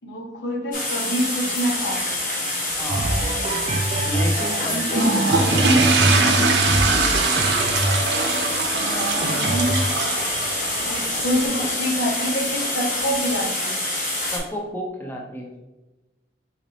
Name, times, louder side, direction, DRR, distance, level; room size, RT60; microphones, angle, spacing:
voice 1, 0.0-2.1 3.1-3.6 4.5-5.5 8.7-9.8 10.8-13.8, equal, 85° left, 1 dB, 0.9 m, -27 dB
sound 1, 0.7-14.4, left 1 dB, 45° left, 1.5 m, -26 dB
voice 2, 2.8-3.1 4.0-5.7 14.3-15.5, equal, 10° left, -1 dB, 0.6 m, -32 dB
sound 2, 2.9-12.7 13.3-13.4, right 1 dB, 35° right, 0.3 m, -26 dB
sound 3, 4.9-11.5, right 3 dB, 75° right, 0.7 m, -23 dB
4.0 x 3.3 x 4.0 m, 1.1 s
head